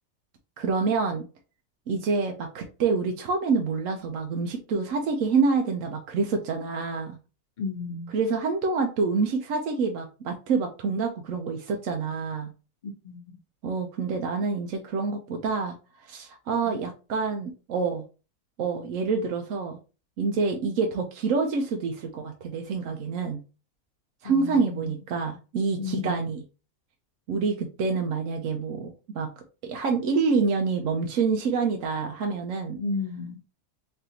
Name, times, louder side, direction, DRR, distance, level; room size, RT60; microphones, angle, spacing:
voice 1, 0.6-1.3 1.9-7.2 8.1-12.5 13.6-18.0 18.6-19.8 20.2-23.4 24.2-26.4 27.3-29.3 29.6-32.8, right 4 dB, 70° right, 3 dB, 1.0 m, -27 dB
voice 2, 7.6-8.1 13.0-13.2 16.6-16.8 24.2-25.0 25.8-26.3 32.8-33.4, left 3 dB, 40° left, 2 dB, 0.9 m, -33 dB
3.7 x 3.3 x 2.8 m, 0.33 s
omnidirectional pair, 1.5 m